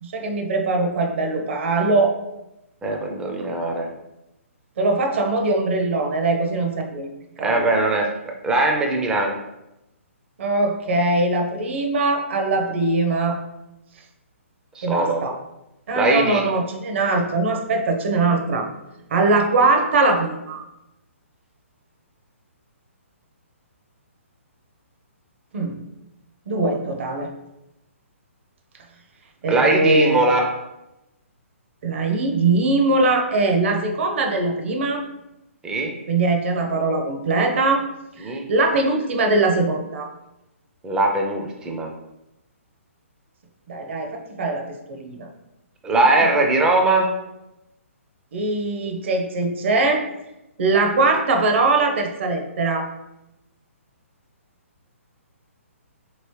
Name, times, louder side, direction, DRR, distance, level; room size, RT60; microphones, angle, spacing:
voice 1, 0.0-2.1 4.8-7.1 7.4-7.7 10.4-13.4 14.8-15.4 15.9-18.7 19.1-20.6 25.5-25.8 26.5-27.3 29.4-30.3 31.8-35.0 36.1-37.8 38.2-40.1 43.7-45.3 46.2-46.3 48.3-50.0 50.6-52.9, right 3 dB, 60° right, 3 dB, 0.7 m, -21 dB
voice 2, 2.8-3.9 7.4-9.4 14.8-15.2 15.9-16.4 29.5-30.5 35.6-35.9 38.2-38.5 40.8-41.9 45.8-47.2, right 2 dB, 10° right, 2 dB, 0.4 m, -20 dB
2.9 x 2.9 x 3.1 m, 0.91 s
hypercardioid pair, 145°, 8 cm